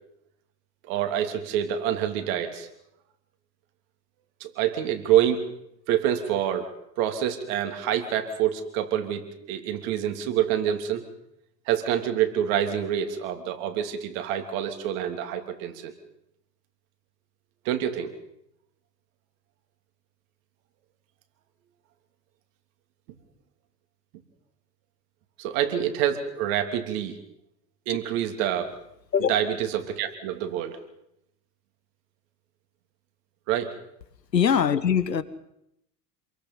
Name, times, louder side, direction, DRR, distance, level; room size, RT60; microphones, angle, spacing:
voice 1, 0.9-2.7 4.4-5.4 5.9-6.7 7.0-11.0 11.7-15.9 17.6-18.1 25.4-27.2 27.9-28.7 29.3-30.8 33.5-33.8, right 10 dB, 55° right, 6 dB, 3.2 m, -26 dB
voice 2, 34.3-35.2, left 7 dB, 80° left, 16 dB, 1.3 m, -22 dB
27.5 x 22.0 x 5.6 m, 0.79 s
figure-of-eight pair, 75°, 49 cm